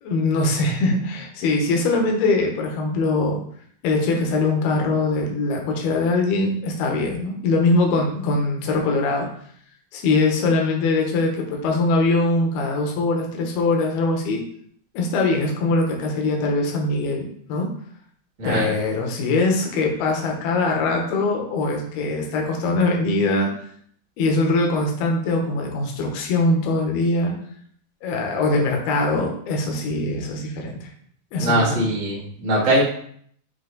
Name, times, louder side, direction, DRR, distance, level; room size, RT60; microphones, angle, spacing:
voice 1, 0.0-3.4 3.8-9.3 9.9-14.4 14.9-17.7 18.4-23.5 24.2-27.3 28.0-30.9 31.3-31.9, left 2 dB, 70° left, 1 dB, 2.6 m, -22 dB
voice 2, 18.4-18.7 31.4-32.8, right 1 dB, 70° right, -6 dB, 0.6 m, -21 dB
7.9 x 3.1 x 3.8 m, 0.63 s
omnidirectional pair, 5.2 m